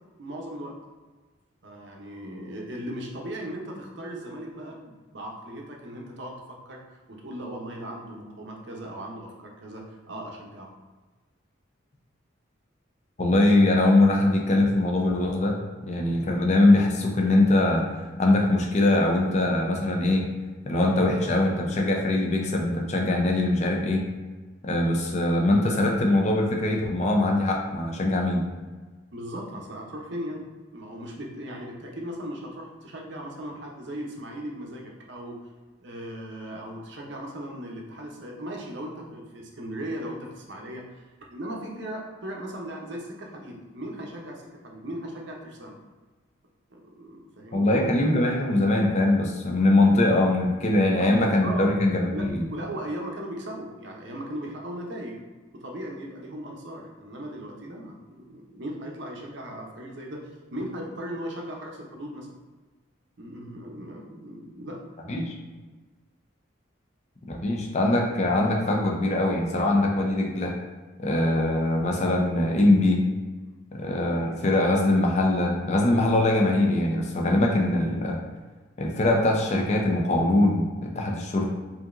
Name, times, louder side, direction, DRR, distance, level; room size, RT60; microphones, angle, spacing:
voice 1, 0.2-0.7 1.6-6.8 7.1-10.7 29.1-30.5 30.7-35.4 35.8-41.0 41.3-45.8 46.7-47.7 50.8-51.1 51.4-51.7 52.1-52.2 52.5-55.2 55.5-60.2 60.5-62.4 63.2-65.1, right 1 dB, 60° right, -1 dB, 0.7 m, -37 dB
voice 2, 13.2-15.6 15.8-20.3 20.7-24.0 24.6-28.5 47.5-52.5 65.1-65.3 67.3-70.6 71.0-73.0 73.7-78.2 78.8-81.5, left 2 dB, 35° left, 1 dB, 0.5 m, -22 dB
5.0 x 2.8 x 2.5 m, 1.3 s
head